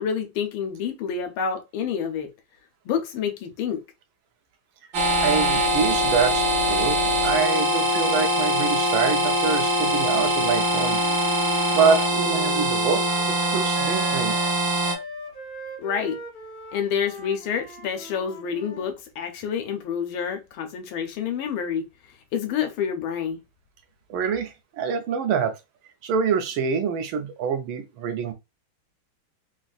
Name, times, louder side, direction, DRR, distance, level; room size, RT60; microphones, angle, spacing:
voice 1, 0.0-2.3 2.8-3.8 15.8-16.2 16.7-21.9 22.3-23.4, left 7 dB, 80° left, 1.6 m, -28 dB
sound 1, 4.9-15.0, equal, 70° right, 1.4 m, -23 dB
voice 2, 5.2-11.0 11.7-13.0 13.4-14.4 24.1-25.6 26.0-28.3, right 6 dB, 90° right, 1.5 m, -25 dB
Wind instrument woodwind instrument, 10.6-18.9, right 1 dB, 65° left, 0.5 m, -40 dB
4.0 x 2.6 x 2.3 m
omnidirectional pair, 2.3 m